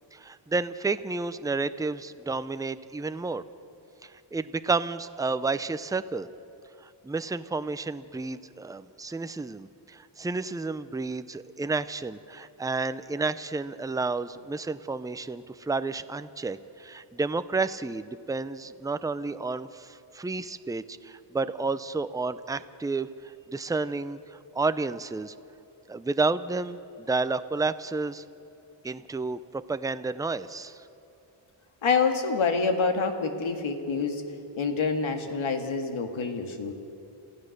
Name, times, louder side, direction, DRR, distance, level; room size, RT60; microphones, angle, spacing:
voice 1, 0.1-3.4 4.0-6.3 6.8-25.3 25.9-28.2 28.8-30.8, right 3 dB, 10° right, 12 dB, 0.5 m, -31 dB
voice 2, 31.8-34.2 34.6-36.7, left 4 dB, 85° left, 5 dB, 2.1 m, -27 dB
28.0 x 15.0 x 6.6 m, 2.8 s
wide cardioid pair, 115°, 46 cm